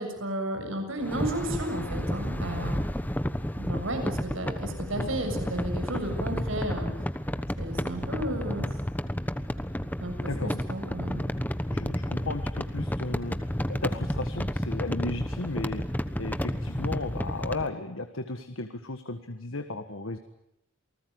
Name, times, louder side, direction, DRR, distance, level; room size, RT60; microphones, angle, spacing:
voice 1, 0.0-2.8 3.6-6.9 7.6-8.8 10.0-11.3, right 1 dB, 85° right, 5 dB, 7.3 m, -33 dB
sound 1, 1.0-17.7, equal, 10° left, 1.1 m, -31 dB
voice 2, 11.4-13.4 13.7-15.8 16.2-20.2, left 2 dB, 85° left, 8 dB, 1.6 m, -34 dB
28.5 x 19.5 x 9.5 m, 0.80 s
head